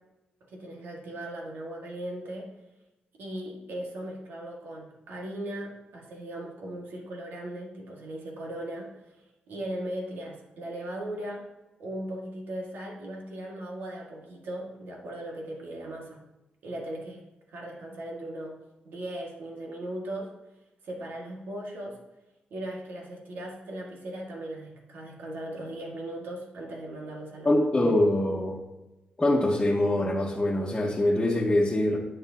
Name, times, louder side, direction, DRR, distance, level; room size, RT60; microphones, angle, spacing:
voice 1, 0.5-2.5 3.1-9.1 9.5-11.5 11.8-16.2 16.6-17.2 17.5-18.6 18.9-20.3 20.8-22.0 22.5-27.7, right 1 dB, 85° right, -1 dB, 1.9 m, -38 dB
voice 2, 27.4-28.6 29.2-32.0, left 1 dB, 20° left, -5 dB, 1.3 m, -24 dB
9.5 x 8.7 x 2.9 m, 1.0 s
cardioid pair, 90°, 3 cm